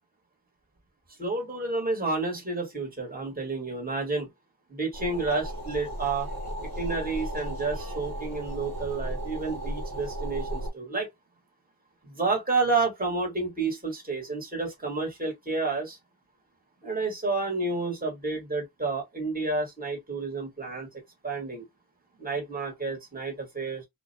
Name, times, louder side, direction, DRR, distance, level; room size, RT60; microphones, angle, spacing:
voice 1, 1.2-4.3 4.7-6.3 6.8-11.1 12.0-16.0 16.8-20.9 21.2-21.6 22.2-23.9, right 3 dB, 20° right, 1.3 m, -30 dB
sound 1, 4.9-10.7, right 1 dB, 60° right, 1.1 m, -35 dB
2.3 x 2.1 x 2.5 m
wide cardioid pair, 70°, 40 cm